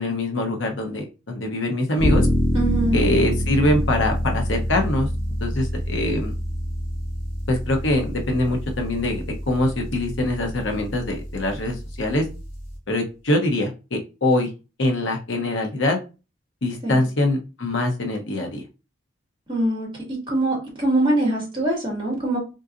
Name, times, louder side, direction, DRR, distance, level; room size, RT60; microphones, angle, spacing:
voice 1, 0.0-2.3 2.9-5.1 5.4-6.3 7.5-12.2 12.9-14.5 14.8-16.0 16.6-18.6, left 1 dB, 75° left, 3 dB, 0.9 m, -23 dB
sound 1, 2.0-12.8, equal, 30° left, 1.8 m, -26 dB
voice 2, 2.5-3.0 16.8-17.0 19.5-19.9 20.3-22.4, right 1 dB, 25° right, -1 dB, 2.0 m, -23 dB
3.9 x 3.8 x 2.5 m, 0.30 s
head